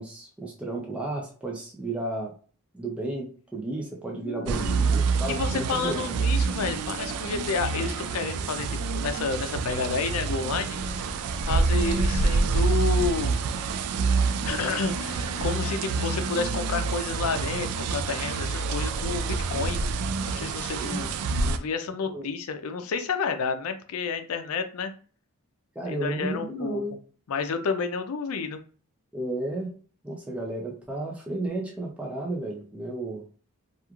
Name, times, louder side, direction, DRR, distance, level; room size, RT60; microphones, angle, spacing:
voice 1, 0.0-2.3 2.7-6.0 20.8-21.1 22.1-22.3 25.8-26.9 29.1-29.7 30.0-33.2, right 2 dB, 5° right, -2 dB, 0.4 m, -33 dB
voice 2, 4.1-4.9 5.3-11.1 11.5-13.4 14.4-19.8 20.2-21.1 21.4-24.9 25.9-26.8 27.3-28.6, left 5 dB, 80° left, 8 dB, 0.4 m, -30 dB
sound 1, 4.5-21.6, right 4 dB, 85° right, 0.3 m, -27 dB
2.9 x 2.4 x 2.3 m, 0.41 s
head